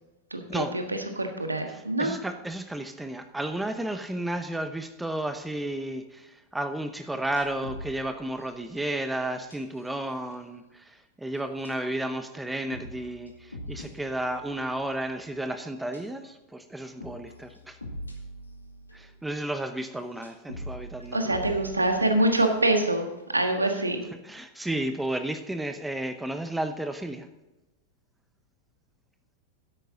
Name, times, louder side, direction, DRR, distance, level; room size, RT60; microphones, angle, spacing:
voice 1, 0.3-2.1 21.1-24.0, right 1 dB, 80° right, 5 dB, 1.6 m, -25 dB
voice 2, 1.7-17.8 18.9-21.4 24.1-27.3, right 1 dB, 5° right, 9 dB, 0.9 m, -33 dB
sound 1, 7.3-9.1 9.5-9.8 10.3-10.4 11.4-12.0 12.5-15.4 15.9-16.3 16.7-19.3 20.0-22.9 23.2-23.3, equal, 80° left, 2.2 m, -43 dB
13.0 x 10.5 x 3.8 m, 1.0 s
figure-of-eight pair, 90°, 0 cm